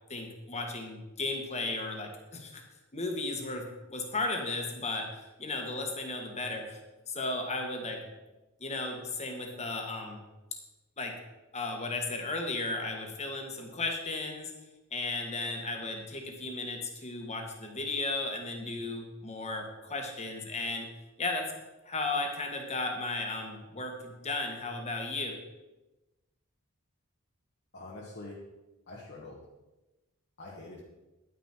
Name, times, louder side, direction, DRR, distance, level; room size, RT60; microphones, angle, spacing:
voice 1, 0.1-2.6 2.9-5.1 5.4-6.8 7.1-8.1 8.6-10.2 11.0-11.2 11.5-14.5 14.9-20.9 21.2-21.5 21.8-25.4, left 2 dB, 30° left, 3 dB, 1.6 m, -35 dB
voice 2, 27.7-28.4 28.9-29.4 30.4-30.8, left 2 dB, 50° left, -4 dB, 1.4 m, -45 dB
10.5 x 9.6 x 4.4 m, 1.1 s
head